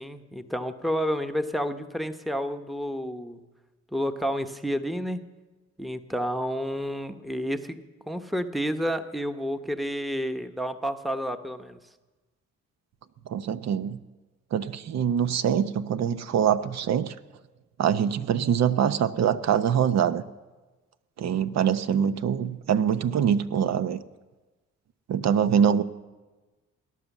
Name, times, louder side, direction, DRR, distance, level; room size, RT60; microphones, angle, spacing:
voice 1, 0.0-3.4 3.9-5.2 5.8-7.8 8.1-11.8, equal, ahead, 8 dB, 1.0 m, -30 dB
voice 2, 13.3-14.0 14.5-17.1 17.8-20.2 21.2-24.0 25.1-25.8, right 8 dB, 60° right, 12 dB, 0.9 m, -24 dB
18.0 x 11.0 x 7.2 m, 1.2 s
cardioid pair, 90°, 30 cm